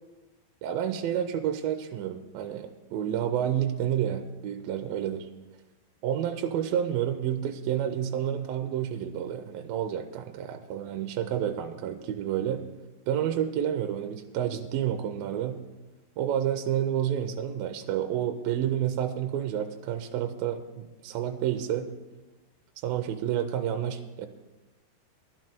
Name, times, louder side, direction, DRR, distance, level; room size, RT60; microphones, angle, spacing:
voice 1, 0.6-5.3 6.0-12.6 13.1-15.6 16.2-21.9 22.8-24.3, right 10 dB, 80° right, 6 dB, 2.1 m, -29 dB
11.5 x 6.5 x 7.5 m, 1.1 s
omnidirectional pair, 4.6 m